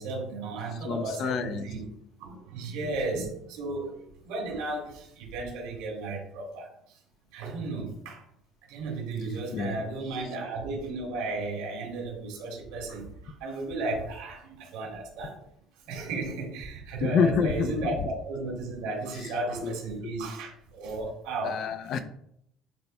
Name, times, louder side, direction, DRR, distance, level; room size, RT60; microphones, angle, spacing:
voice 1, 0.0-1.8 2.2-6.7 7.3-8.2 8.7-15.4 15.9-21.6, right 2 dB, 85° right, 1 dB, 2.4 m, -34 dB
voice 2, 0.8-1.7 9.5-9.9 17.0-18.1 19.2-19.3 19.6-19.8 20.0-20.1 21.4-22.0, left 6 dB, 50° left, 10 dB, 0.5 m, -28 dB
10.5 x 4.1 x 2.2 m, 0.72 s
cardioid pair, 135°, 0 cm